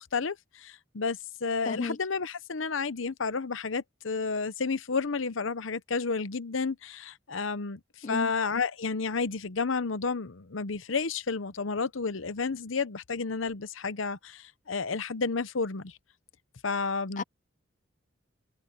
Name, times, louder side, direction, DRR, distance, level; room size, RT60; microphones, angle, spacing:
voice 1, 0.0-15.9 16.6-17.2, left 4 dB, 80° left, 0.9 m, -31 dB
voice 2, 1.7-2.0 8.0-8.3 17.2-17.3, left 4 dB, 40° left, 0.4 m, -32 dB
head